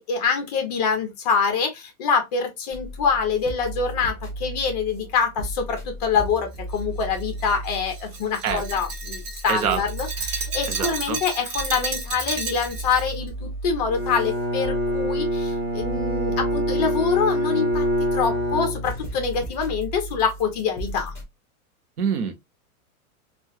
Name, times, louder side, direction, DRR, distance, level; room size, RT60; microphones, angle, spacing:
voice 1, 0.0-17.9 18.1-21.1, left 6 dB, 30° left, 0.7 m, -25 dB
sound 1, 2.7-21.2, right 1 dB, 5° left, 1.1 m, -36 dB
Glass, 6.7-13.1, right 4 dB, 60° right, 1.1 m, -32 dB
voice 2, 9.5-9.8 10.7-11.2 22.0-22.3, right 7 dB, 90° right, 1.0 m, -25 dB
Bowed string instrument, 13.9-19.3, equal, 15° right, 0.7 m, -25 dB
3.2 x 2.4 x 2.6 m
supercardioid pair, 170°, 43 cm